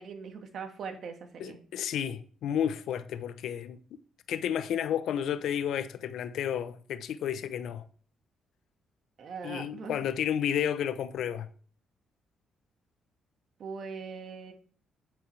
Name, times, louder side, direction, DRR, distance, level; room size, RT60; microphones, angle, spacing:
voice 1, 0.0-1.6 9.2-10.1 13.6-14.5, right 5 dB, 60° right, 1.7 m, -41 dB
voice 2, 1.4-3.8 4.3-7.8 9.4-11.5, left 9 dB, 75° left, 0.8 m, -31 dB
8.9 x 7.7 x 3.3 m
cardioid pair, 90°, 0 cm